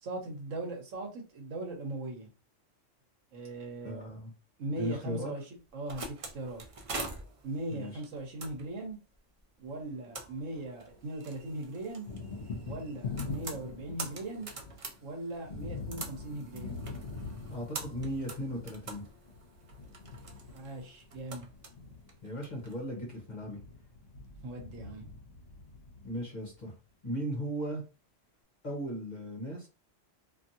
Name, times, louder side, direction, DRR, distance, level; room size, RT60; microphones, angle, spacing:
voice 1, 0.0-2.3 3.3-4.0 4.6-5.4 5.7-6.6 7.4-9.0 9.6-12.1 12.6-14.5 15.0-16.8 20.5-21.5 24.4-25.1, right 2 dB, 80° right, 1.2 m, -39 dB
voice 2, 3.8-4.3 4.8-5.3 7.7-8.0 17.5-19.0 22.2-23.6 26.0-26.7 27.0-27.8 28.6-29.7, equal, 40° left, 1.0 m, -37 dB
sound 1, 5.6-22.8, right 3 dB, 55° right, 0.3 m, -46 dB
Thunder, 9.8-11.0 11.3-26.5, left 4 dB, 55° left, 1.2 m, -44 dB
2.8 x 2.6 x 2.7 m
omnidirectional pair, 1.3 m